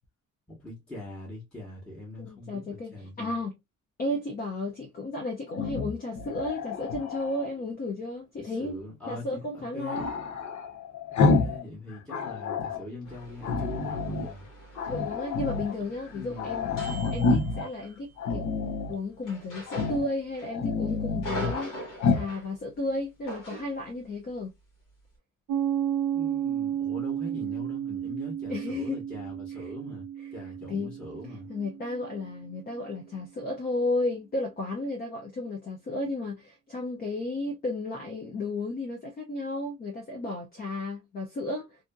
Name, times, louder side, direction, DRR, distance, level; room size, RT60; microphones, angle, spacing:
voice 1, 0.5-3.3 8.4-10.0 11.1-14.5 16.0-16.8 25.7-25.8 26.1-30.1 30.3-31.5, left 2 dB, 5° left, 1.0 m, -42 dB
voice 2, 2.2-3.5 4.0-8.8 9.1-10.1 14.9-16.7 17.1-18.5 18.9-21.7 22.1-24.5 28.5-29.1 30.7-30.9 31.5-41.8, left 2 dB, 30° left, 0.6 m, -33 dB
Growling, 5.5-7.5 9.9-11.6 11.9-12.8 13.4-14.3 14.7-15.7 16.1-16.2 16.4-17.7 18.2-19.0 19.7-20.1 20.4-21.7 22.0-22.3, left 4 dB, 65° left, 0.7 m, -28 dB
sound 1, 13.1-18.0 19.2-20.5 20.8-22.5 23.3-23.8, equal, 85° left, 1.4 m, -42 dB
Piano, 25.5-32.7, right 10 dB, 80° right, 0.5 m, -33 dB
2.6 x 2.6 x 2.2 m
cardioid pair, 165°, 31 cm